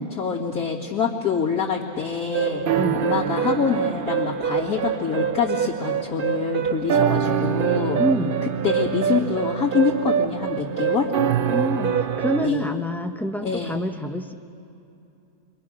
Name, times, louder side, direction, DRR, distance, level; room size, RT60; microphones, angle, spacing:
voice 1, 0.2-8.0 8.4-11.1 12.4-12.6 13.4-13.8, left 6 dB, 65° left, -8 dB, 2.5 m, -26 dB
sound 1, 2.3-12.5, right 8 dB, 60° right, 0.5 m, -24 dB
voice 2, 2.8-3.1 8.0-8.4 11.5-14.3, left 1 dB, ahead, 5 dB, 0.4 m, -26 dB
29.0 x 23.5 x 6.2 m, 2.7 s
omnidirectional pair, 1.7 m